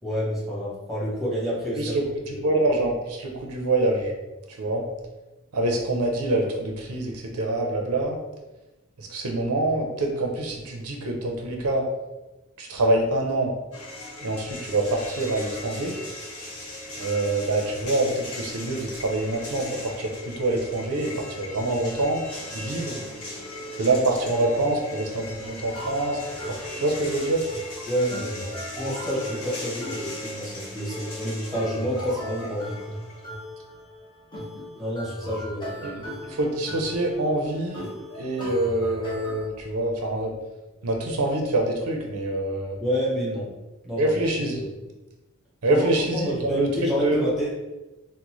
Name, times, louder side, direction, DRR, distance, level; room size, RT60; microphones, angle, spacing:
voice 1, 0.0-1.9 2.3-2.6 27.8-32.8 34.8-36.0 42.8-43.5 43.8-44.2 44.5-44.9 45.7-45.9 46.1-47.6, equal, ahead, -7 dB, 1.1 m, -29 dB
voice 2, 1.8-4.1 4.5-4.9 5.5-8.2 9.0-11.8 12.6-13.5 14.2-16.0 17.0-22.2 22.5-23.0 23.7-26.2 26.5-27.4 35.8-36.0 36.3-37.9 38.2-40.3 40.8-42.8 44.0-44.6 45.6-47.2, right 2 dB, 90° right, 1 dB, 0.6 m, -25 dB
sound 1, 13.7-33.3, left 1 dB, 80° left, 1.0 m, -38 dB
sound 2, 25.7-39.5, equal, 20° left, 0.8 m, -38 dB
3.8 x 2.1 x 3.0 m, 1.1 s
head